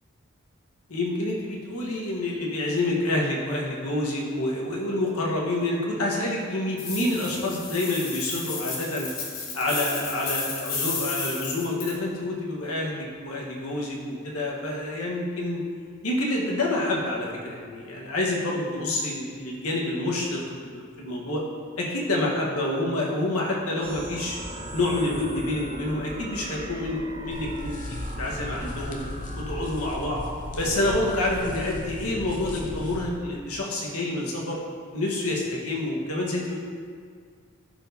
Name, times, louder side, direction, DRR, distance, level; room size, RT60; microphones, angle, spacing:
voice 1, 0.9-9.1 9.5-15.6 16.0-21.4 21.8-24.4 24.7-29.0 29.3-30.2 30.6-34.6 34.9-36.6, left 1 dB, 90° left, -3 dB, 1.3 m, -28 dB
sound 1, 6.8-11.9, left 4 dB, 65° left, 1.3 m, -33 dB
sound 2, 23.8-31.3, right 1 dB, 25° right, 0.7 m, -39 dB
sound 3, 27.3-33.0, left 1 dB, 35° left, 0.7 m, -36 dB
12.0 x 4.6 x 2.7 m, 2.1 s
head